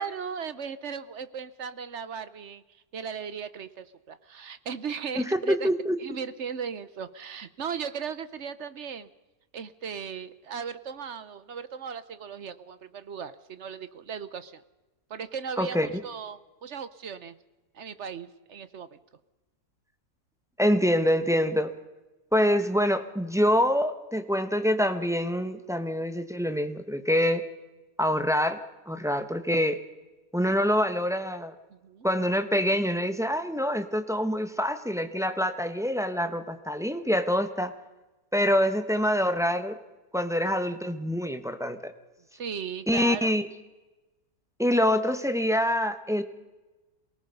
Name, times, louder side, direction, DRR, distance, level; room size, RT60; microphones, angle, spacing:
voice 1, 0.0-5.7 6.0-9.1 9.5-14.6 15.1-17.4 17.7-19.0 31.7-32.1 42.3-43.4, right 6 dB, 50° right, 14 dB, 1.0 m, -37 dB
voice 2, 5.1-6.0 15.6-15.9 20.6-21.7 22.3-27.4 28.0-28.6 28.9-29.8 30.3-31.5 32.0-37.7 38.3-39.8 40.1-41.9 42.9-43.5 44.6-46.2, equal, ahead, 7 dB, 1.1 m, -25 dB
27.5 x 18.5 x 5.4 m, 1.1 s
omnidirectional pair, 1.7 m